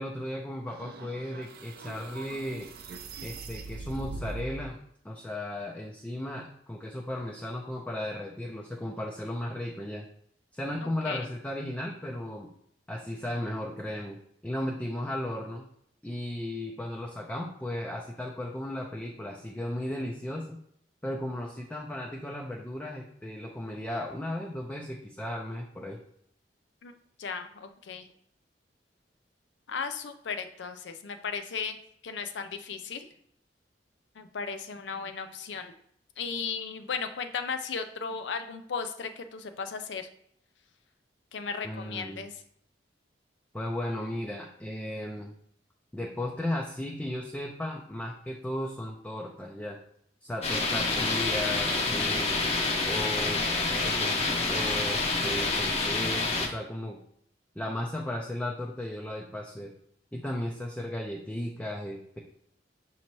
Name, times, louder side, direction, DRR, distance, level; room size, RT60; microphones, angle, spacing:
voice 1, 0.0-2.7 3.2-4.8 5.0-10.1 10.5-12.5 12.9-15.6 16.0-20.6 21.0-26.0 41.6-42.3 43.5-45.3 45.9-49.8 50.2-52.4 52.8-53.4 53.8-54.2 54.5-57.0 57.6-59.7 60.1-62.2, left 1 dB, 5° left, -1 dB, 0.4 m, -35 dB
sound 1, 0.7-4.7, right 3 dB, 60° right, 0.4 m, -41 dB
voice 2, 10.8-11.3 26.8-26.9 27.2-28.1 29.7-31.8 32.0-33.1 34.2-35.8 36.2-40.1 41.3-42.3, left 5 dB, 85° left, 8 dB, 0.5 m, -36 dB
sound 2, 50.4-56.5, left 3 dB, 35° left, 0.7 m, -27 dB
6.3 x 2.8 x 3.0 m, 0.69 s
head